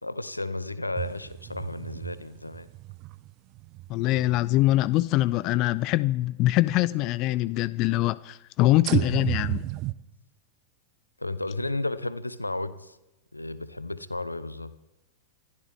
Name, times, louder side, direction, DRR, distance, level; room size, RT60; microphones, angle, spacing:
voice 1, 0.0-2.7 11.2-13.0 13.3-14.7, left 2 dB, 85° left, 0.9 m, -33 dB
sound 1, 0.9-5.2 5.9-6.0 8.9-9.9, right 18 dB, 40° right, 0.7 m, -33 dB
voice 2, 3.9-9.6, left 16 dB, 40° left, 0.4 m, -23 dB
27.0 x 13.5 x 3.6 m
figure-of-eight pair, 95°, 0 cm